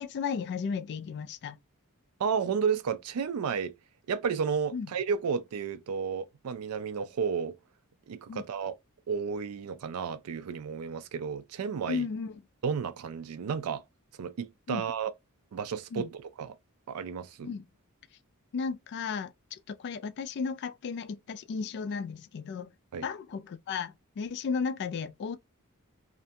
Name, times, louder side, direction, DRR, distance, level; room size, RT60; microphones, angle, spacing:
voice 1, 0.0-1.6 4.7-4.9 8.3-8.4 11.9-12.4 14.7-14.9 15.9-16.1 17.4-17.7 18.5-22.7 23.0-25.4, left 5 dB, 50° left, 0.3 m, -34 dB
voice 2, 2.2-3.7 4.1-7.5 8.1-8.8 9.1-12.1 12.6-13.8 14.2-15.1 15.5-16.1 16.4-16.5 16.9-17.5 22.9-23.0, right 6 dB, 90° right, 0.4 m, -32 dB
2.5 x 2.1 x 2.7 m
head